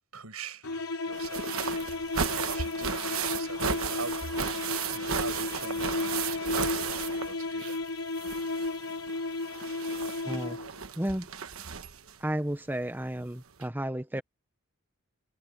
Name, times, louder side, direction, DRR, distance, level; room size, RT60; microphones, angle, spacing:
voice 1, 0.1-0.7 1.0-1.9 2.3-4.2 4.5-7.9, right 5 dB, 90° right, 6.9 m, -43 dB
sound 1, 0.6-10.9, left 3 dB, 90° left, 3.7 m, -34 dB
sound 2, 1.1-7.9 8.2-12.1 13.2-13.3 13.6-13.7, right 6 dB, 70° right, 1.2 m, -34 dB
voice 2, 10.2-10.6 11.0-11.3 12.2-14.2, right 1 dB, 10° right, 0.9 m, -32 dB
head